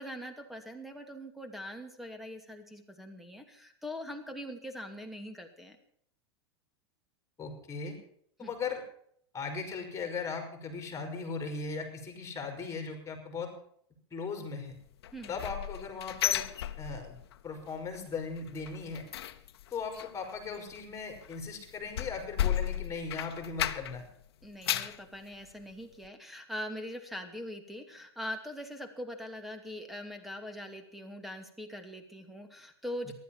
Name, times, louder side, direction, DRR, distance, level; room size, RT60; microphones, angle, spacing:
voice 1, 0.0-5.8 8.4-8.5 15.1-15.4 24.4-33.1, equal, ahead, 7 dB, 2.5 m, -42 dB
voice 2, 7.4-8.0 8.4-8.8 9.3-13.5 14.1-14.7 15.3-16.4 16.8-17.2 17.4-19.1 19.7-24.1 33.0-33.1, left 4 dB, 20° left, 4 dB, 5.0 m, -38 dB
sound 1, 15.0-17.4 17.7-18.0 18.3-24.1 24.4-25.0 25.5-25.6 26.0-26.1, left 11 dB, 75° left, 1.0 m, -34 dB
15.0 x 11.5 x 7.2 m, 0.66 s
hypercardioid pair, 110°, 13 cm